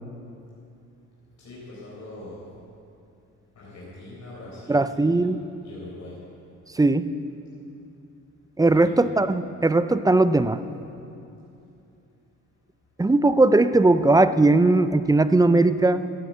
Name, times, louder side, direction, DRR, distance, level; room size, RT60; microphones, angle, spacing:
voice 1, 1.4-2.4 3.5-5.2 5.6-6.1 8.7-9.0, left 2 dB, 60° left, -7 dB, 4.5 m, -42 dB
voice 2, 4.7-5.4 6.7-7.1 8.6-10.6 13.0-16.1, right 2 dB, 10° right, 12 dB, 0.5 m, -19 dB
15.0 x 9.2 x 8.0 m, 2.7 s
cardioid pair, 90°, 30 cm